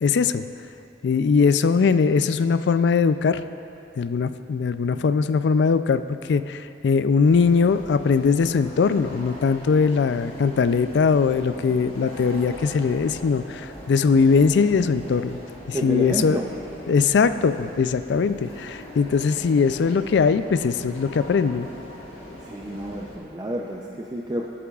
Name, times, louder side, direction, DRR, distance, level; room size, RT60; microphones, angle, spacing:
voice 1, 0.0-0.5 1.0-3.4 4.0-6.0 6.3-15.4 15.7-16.4 16.9-21.7, left 5 dB, 65° left, 12 dB, 0.3 m, -20 dB
sound 1, 7.2-23.2, equal, 30° left, 2.1 m, -40 dB
voice 2, 15.7-16.5 22.4-24.5, right 1 dB, 20° right, -1 dB, 0.5 m, -29 dB
19.5 x 8.5 x 2.4 m, 2.7 s
head